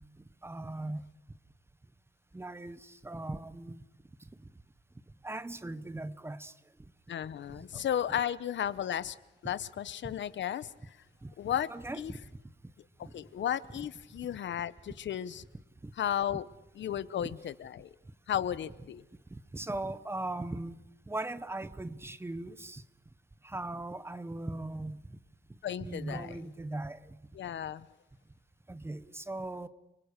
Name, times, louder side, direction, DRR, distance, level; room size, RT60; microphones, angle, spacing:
voice 1, 0.4-1.1 2.3-3.8 5.2-6.5 7.6-7.8 10.0-10.1 11.2-11.3 11.7-12.2 15.8-15.9 17.2-17.3 19.3-20.8 21.1-22.8 23.4-25.0 25.8-27.0 28.7-29.7, right 2 dB, 15° right, 1.0 m, -39 dB
voice 2, 7.1-9.2 9.4-11.0 11.4-12.1 13.0-15.4 16.0-16.4 16.8-17.9 18.3-19.0 25.6-26.4 27.3-27.9, left 10 dB, 80° left, 0.9 m, -34 dB
30.0 x 25.0 x 6.7 m
wide cardioid pair, 170°, 19 cm